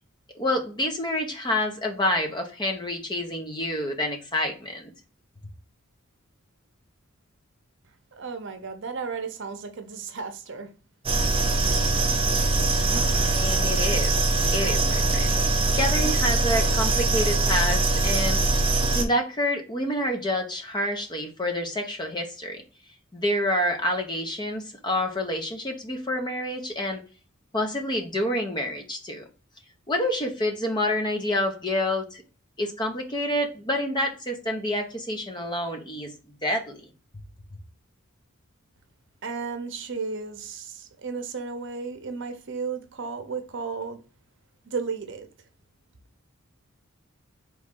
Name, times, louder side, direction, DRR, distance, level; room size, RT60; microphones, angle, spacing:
voice 1, 0.3-4.9 13.3-14.2 14.5-15.3 15.7-18.4 18.9-22.6 23.1-27.0 27.5-29.2 29.9-32.2 32.6-36.1 36.4-36.9, left 1 dB, 20° left, 0.8 m, -28 dB
voice 2, 8.1-10.7 39.2-44.0 44.7-45.3, right 5 dB, 60° right, 0.7 m, -34 dB
sound 1, 11.0-19.0, right 2 dB, 25° right, 0.7 m, -22 dB
3.9 x 3.1 x 3.7 m
head